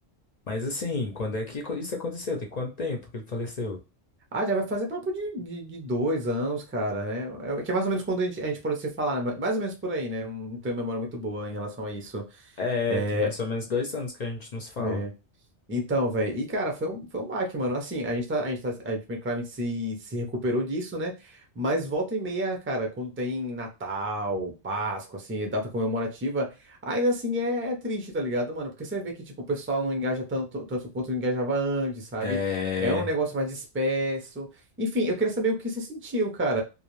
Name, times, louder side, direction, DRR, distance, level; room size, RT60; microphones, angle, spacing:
voice 1, 0.5-3.8 12.6-15.0 32.2-33.1, left 4 dB, 55° left, 2 dB, 0.5 m, -30 dB
voice 2, 4.3-12.5 12.9-13.3 14.8-15.1 15.7-32.4 32.8-34.5 34.8-36.6, right 1 dB, 20° right, 2 dB, 0.4 m, -29 dB
2.4 x 2.1 x 3.0 m, 0.28 s
omnidirectional pair, 1.2 m